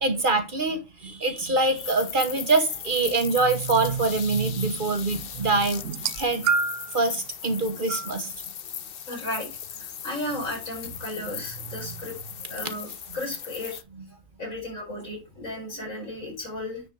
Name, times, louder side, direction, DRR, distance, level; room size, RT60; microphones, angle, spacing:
voice 1, 0.0-5.8 6.2-6.5 6.9-8.3 12.6-12.7, right 3 dB, 40° right, 1.2 m, -24 dB
sound 1, 1.7-13.8, left 9 dB, 55° left, 0.8 m, -38 dB
sound 2, 5.8-7.0 7.9-8.1 9.1-9.2, right 5 dB, 75° right, 1.0 m, -26 dB
voice 2, 9.1-9.5 9.8-12.2 12.5-13.8 14.4-16.8, left 1 dB, 80° left, 5.0 m, -34 dB
9.7 x 4.2 x 4.7 m
omnidirectional pair, 1.4 m